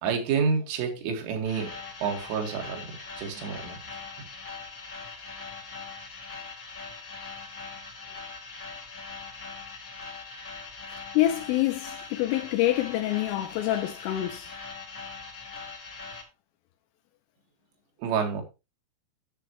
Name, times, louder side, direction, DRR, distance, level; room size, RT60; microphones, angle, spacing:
voice 1, 0.0-1.8 2.0-3.8 18.0-18.4, right 6 dB, 75° right, 4.3 m, -29 dB
sound 1, 1.4-16.2, left 4 dB, 45° left, 1.1 m, -41 dB
voice 2, 11.1-14.5, left 14 dB, 80° left, 3.3 m, -26 dB
10.0 x 7.9 x 3.1 m
omnidirectional pair, 5.8 m